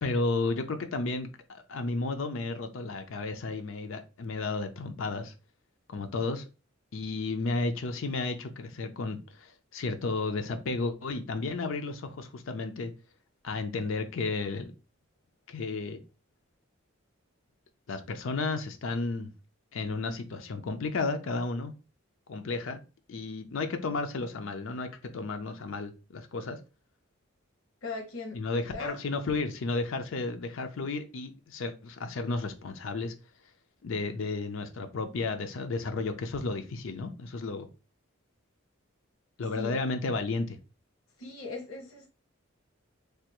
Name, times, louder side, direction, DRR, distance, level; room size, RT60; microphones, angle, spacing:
voice 1, 0.0-5.3 5.9-6.4 6.9-12.9 13.4-14.7 15.5-16.0 17.9-19.3 19.7-21.7 22.3-22.8 23.1-26.6 28.3-33.1 33.8-37.7 39.4-40.6, left 3 dB, 70° left, 0.5 m, -33 dB
voice 2, 27.8-29.0 39.5-39.8 41.2-42.1, left 3 dB, 85° left, 0.9 m, -39 dB
3.4 x 2.3 x 2.9 m
head